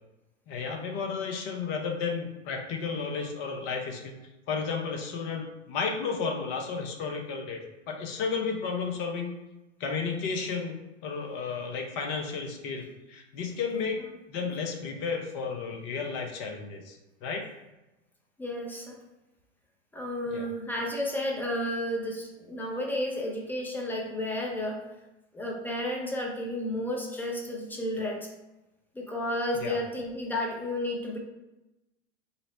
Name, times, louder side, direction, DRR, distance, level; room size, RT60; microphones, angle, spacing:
voice 1, 0.5-4.2 4.5-7.6 7.9-9.3 9.8-10.8 11.0-14.0 14.3-17.5 20.3-20.5 29.5-29.8, left 5 dB, 40° left, 2 dB, 0.7 m, -33 dB
voice 2, 18.4-19.0 19.9-24.8 25.3-28.3 29.0-31.2, left 1 dB, 5° left, -1 dB, 0.6 m, -32 dB
4.0 x 2.0 x 4.0 m, 1.0 s
figure-of-eight pair, 95°, 36 cm